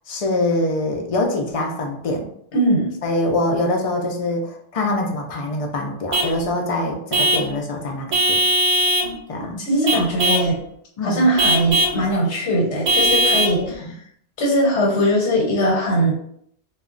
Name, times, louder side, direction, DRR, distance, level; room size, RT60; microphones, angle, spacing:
voice 1, 0.1-2.3 3.0-8.4 9.3-9.6 9.9-10.6 11.0-11.2 13.8-13.9, left 2 dB, 55° left, 1 dB, 0.4 m, -24 dB
voice 2, 2.5-2.9 9.0-9.1 9.6-10.6 11.0-13.9 14.4-16.1, equal, 90° left, -1 dB, 1.1 m, -20 dB
Vehicle horn car horn honking / Truck, 6.1-6.4 7.1-7.5 8.1-9.1 9.9-10.5 11.4-12.0 12.9-13.6, right 1 dB, 85° right, 0.9 m, -19 dB
2.2 x 2.0 x 3.7 m, 0.69 s
omnidirectional pair, 1.1 m